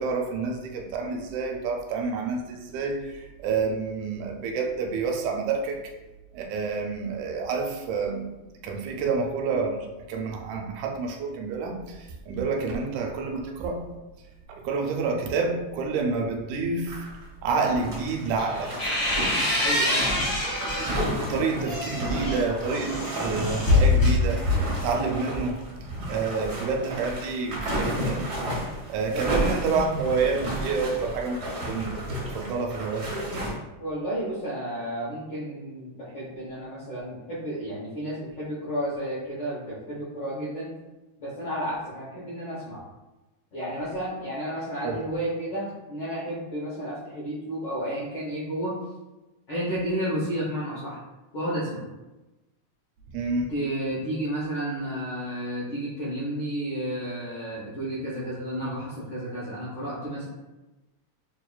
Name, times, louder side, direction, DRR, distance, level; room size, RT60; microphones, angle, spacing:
voice 1, 0.0-5.8 6.3-8.3 8.6-13.8 14.5-17.1 17.4-18.9 21.3-24.4 24.8-25.6 26.1-28.4 28.9-32.0 32.3-33.3 44.8-45.0 53.1-53.5, right 4 dB, 85° right, 2 dB, 2.0 m, -28 dB
sound 1, 16.9-17.3 17.5-33.5, right 1 dB, 70° right, 0.9 m, -32 dB
sound 2, 18.4-21.0 21.5-24.8, left 2 dB, 40° left, 0.9 m, -25 dB
voice 2, 19.6-20.1 29.1-29.4 33.8-40.7 41.2-42.8 43.5-48.8 49.5-51.0 51.3-51.8 53.5-60.3, right 1 dB, 75° left, -8 dB, 1.0 m, -32 dB
6.8 x 2.4 x 2.3 m, 1.1 s
omnidirectional pair, 3.3 m